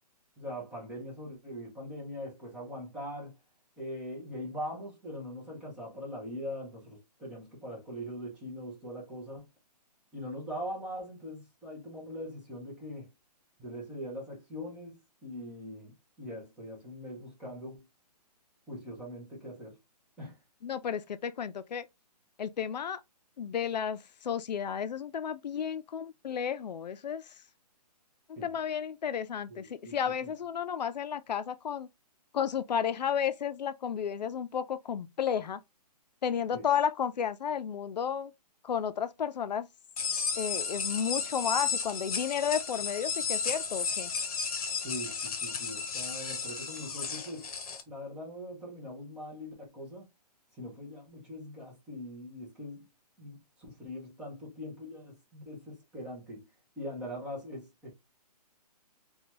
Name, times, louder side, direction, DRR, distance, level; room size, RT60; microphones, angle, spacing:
voice 1, 0.4-3.4 3.8-9.4 10.1-13.1 13.6-17.9 18.7-19.8 20.2-20.4 28.4-28.6 29.5-30.3 36.5-36.7 44.8-50.1 50.6-52.9 53.2-56.5 56.8-57.9, equal, 5° right, 0.6 m, -42 dB
voice 2, 20.6-21.8 22.4-23.0 23.4-27.2 28.4-31.9 32.3-35.6 36.2-38.3 38.6-39.7 40.4-44.1, left 8 dB, 90° left, 0.4 m, -32 dB
sound 1, 40.0-47.8, left 5 dB, 60° left, 0.7 m, -33 dB
2.6 x 2.3 x 2.8 m
hypercardioid pair, 160°, 21 cm